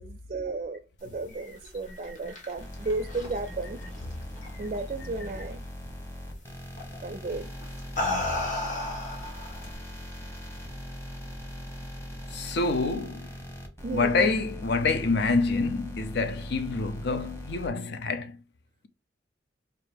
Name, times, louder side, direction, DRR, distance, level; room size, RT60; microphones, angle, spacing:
voice 1, 0.0-3.8 4.6-5.6 7.0-7.5 13.8-14.3, right 3 dB, 40° right, 0.4 m, -34 dB
sound 1, 0.7-0.8 1.3-2.3 2.8-3.9 4.4-5.4, left 1 dB, 80° left, 1.5 m, -48 dB
sound 2, 1.9-4.8 5.1-5.5 6.8-7.0 7.6-9.7, left 2 dB, 45° left, 1.3 m, -33 dB
sound 3, 2.6-17.7, equal, 15° left, 1.1 m, -40 dB
voice 2, 12.3-13.3 13.9-18.3, left 3 dB, 60° left, 0.5 m, -27 dB
4.4 x 2.5 x 3.3 m
head